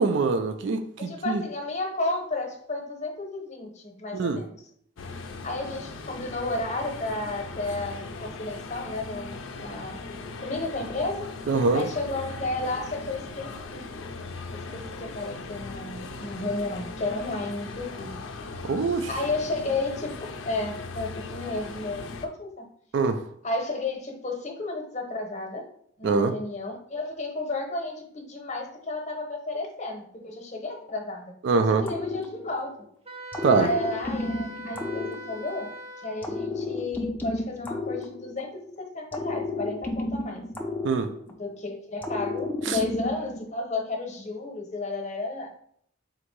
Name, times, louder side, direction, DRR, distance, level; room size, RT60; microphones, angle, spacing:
voice 1, 0.0-1.4 4.1-4.4 11.5-11.9 18.7-19.1 22.9-23.2 26.0-26.3 31.4-31.8 33.4-33.7 40.8-41.1 42.7-42.8, right 4 dB, 65° right, 8 dB, 0.4 m, -23 dB
voice 2, 1.0-4.5 5.4-10.0 10.4-11.3 11.7-13.8 14.5-18.2 19.1-22.6 23.4-25.7 26.0-31.3 31.7-32.8 33.6-35.7 36.0-40.4 41.4-45.5, left 2 dB, 35° left, 2 dB, 0.9 m, -32 dB
sound 1, 5.0-22.3, left 3 dB, 90° left, 0.5 m, -39 dB
sound 2, 31.8-32.8 33.3-35.7 36.2-38.6 39.1-41.5 42.0-43.5, left 2 dB, 10° left, 0.5 m, -32 dB
Wind instrument woodwind instrument, 33.1-36.5, equal, 30° right, 0.7 m, -41 dB
3.8 x 2.6 x 4.6 m, 0.64 s
head